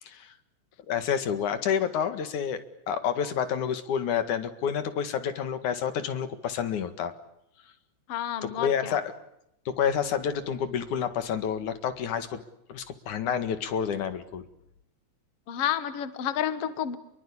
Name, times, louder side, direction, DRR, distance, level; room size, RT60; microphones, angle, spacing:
voice 1, 0.9-7.1 8.5-9.0 9.8-12.4 12.7-14.4, left 8 dB, 80° left, 10 dB, 3.4 m, -29 dB
voice 2, 8.1-9.0 15.5-17.0, left 10 dB, 55° left, 12 dB, 2.4 m, -30 dB
28.5 x 22.5 x 8.6 m, 0.79 s
omnidirectional pair, 3.4 m